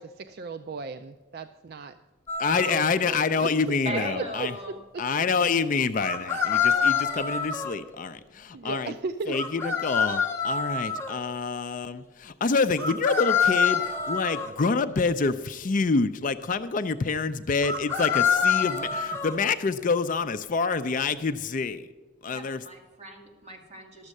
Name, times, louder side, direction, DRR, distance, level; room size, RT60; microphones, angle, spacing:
voice 1, 0.0-2.0 2.5-3.5 3.9-5.0 8.5-9.4, right 4 dB, 55° right, 9 dB, 0.4 m, -36 dB
sound 1, 2.3-2.9 6.0-7.8 9.3-11.1 12.8-14.5 17.6-19.4, left 6 dB, 15° left, 1.4 m, -26 dB
voice 2, 2.4-4.6 5.0-8.9 9.3-21.9 22.2-22.6, left 4 dB, 45° left, 11 dB, 0.4 m, -27 dB
voice 3, 3.8-4.8 22.3-24.1, right 1 dB, 35° right, 0 dB, 2.2 m, -37 dB
12.0 x 7.2 x 6.5 m, 1.2 s
head